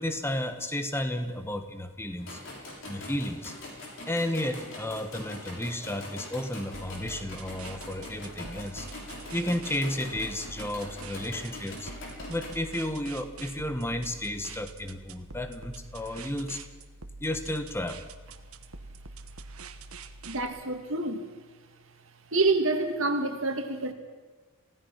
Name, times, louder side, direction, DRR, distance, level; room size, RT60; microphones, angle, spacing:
voice 1, 0.0-2.4 2.8-3.5 4.1-8.9 9.3-11.9 12.3-16.6 17.2-18.0, left 1 dB, 10° left, 1.4 m, -32 dB
sound 1, 2.2-12.5, left 1 dB, 60° left, 7.2 m, -43 dB
sound 2, 6.7-20.4, right 3 dB, 80° right, 1.4 m, -45 dB
voice 2, 20.3-21.2 22.3-23.9, right 3 dB, 65° right, 2.2 m, -27 dB
29.0 x 17.0 x 5.9 m
head